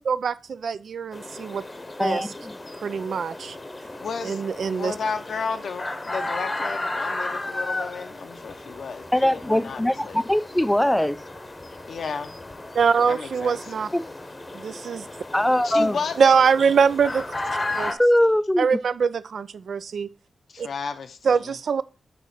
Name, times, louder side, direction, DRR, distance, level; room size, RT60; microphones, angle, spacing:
voice 1, 0.0-1.6 2.0-2.3 2.8-3.6 4.2-4.9 12.7-13.9 14.5-15.1 16.2-17.3 17.8-18.0 18.6-20.1 20.6-20.7 21.2-21.8, right 6 dB, 75° right, 0.3 m, -23 dB
sound 1, 1.1-17.9, left 2 dB, 25° left, 0.8 m, -34 dB
voice 2, 2.0-2.5 9.1-11.2 13.9-14.0 15.3-16.0 18.0-18.7, left 1 dB, 10° left, 0.4 m, -21 dB
voice 3, 4.0-4.4 4.7-10.2 11.7-12.4 13.1-13.6 15.6-16.5 17.7-17.9 20.5-21.6, left 5 dB, 75° left, 0.8 m, -33 dB
6.8 x 3.0 x 6.0 m
cardioid pair, 75°, 0 cm